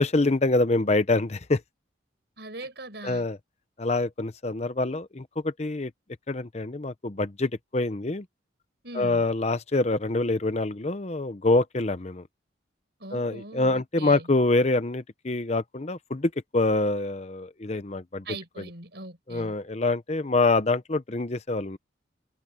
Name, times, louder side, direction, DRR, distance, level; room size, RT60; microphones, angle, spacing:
voice 1, 0.0-1.6 3.0-3.4 3.8-5.9 6.3-8.2 8.9-12.2 13.1-18.2 19.3-21.8, left 2 dB, 35° left, 0.8 m, -25 dB
voice 2, 2.4-3.3 8.8-9.3 13.0-14.3 18.3-19.6, right 2 dB, 60° right, 7.0 m, -40 dB
head